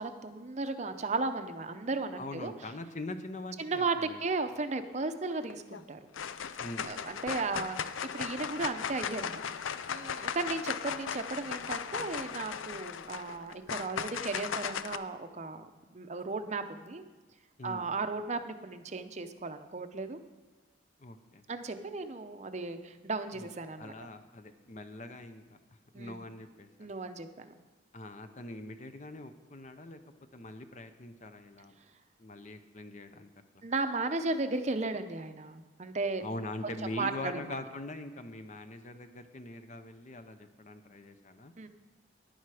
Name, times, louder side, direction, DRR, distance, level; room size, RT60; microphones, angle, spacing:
voice 1, 0.0-2.5 3.6-6.0 6.8-9.4 9.9-17.0 17.6-20.2 21.5-23.9 25.9-26.2 26.8-27.5 33.6-36.2 36.6-37.3 41.6-41.7, right 3 dB, 35° right, 9 dB, 0.6 m, -35 dB
voice 2, 2.2-4.2 6.6-6.9 17.6-17.9 21.0-21.4 23.3-23.5 23.8-25.6 25.9-26.9 27.9-30.0 30.3-31.8 32.2-33.3 33.5-33.7 36.2-41.5, left 2 dB, 40° left, 9 dB, 0.7 m, -43 dB
sound 1, 5.4-5.8 6.1-15.0, left 7 dB, 90° left, 0.5 m, -37 dB
10.5 x 10.0 x 4.9 m, 1.3 s
head